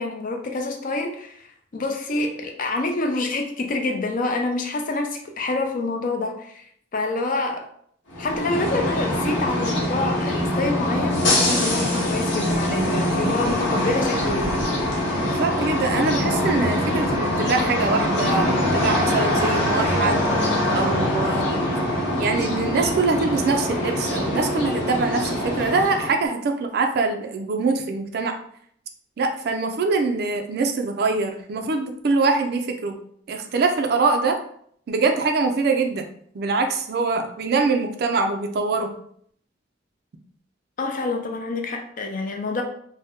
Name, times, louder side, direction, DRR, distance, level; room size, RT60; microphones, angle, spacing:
voice 1, 0.0-1.5 1.7-6.7 6.9-7.7 8.2-14.5 40.8-42.6, left 2 dB, 45° left, 3 dB, 0.5 m, -27 dB
sound 1, 8.1-26.2, left 1 dB, 85° left, 1.0 m, -23 dB
voice 2, 15.1-20.2 20.7-21.6 22.2-28.4 29.2-33.0 33.3-34.4 34.9-36.0 36.3-38.9, right 3 dB, 55° right, 5 dB, 0.4 m, -23 dB
2.7 x 2.1 x 3.5 m, 0.64 s
head